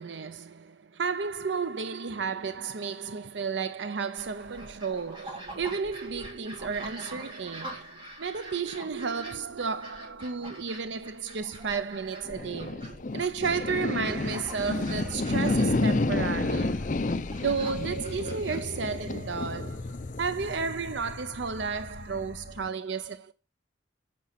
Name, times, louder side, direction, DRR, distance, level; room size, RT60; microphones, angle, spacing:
voice 1, 0.0-16.9 17.4-23.3, right 5 dB, 70° right, 0.6 m, -33 dB
sound 1, 4.2-19.4, right 1 dB, 25° right, 3.5 m, -45 dB
sound 2, 12.3-22.7, left 2 dB, 45° left, 0.6 m, -31 dB
8.4 x 5.4 x 5.7 m
head